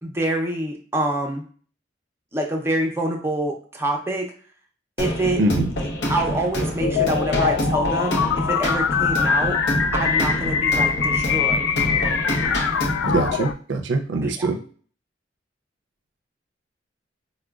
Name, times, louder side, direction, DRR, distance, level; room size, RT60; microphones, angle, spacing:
voice 1, 0.0-1.4 2.3-4.3 5.0-5.4 5.8-9.6 9.9-11.8 14.2-14.5, right 1 dB, 15° right, 1 dB, 0.5 m, -26 dB
sound 1, 5.0-13.3, equal, 65° left, 0.8 m, -27 dB
voice 2, 5.4-5.7 13.0-14.6, right 2 dB, 70° right, 5 dB, 0.4 m, -23 dB
sound 2, 6.8-13.5, left 6 dB, 90° left, 0.3 m, -23 dB
4.7 x 2.1 x 2.3 m, 0.43 s
head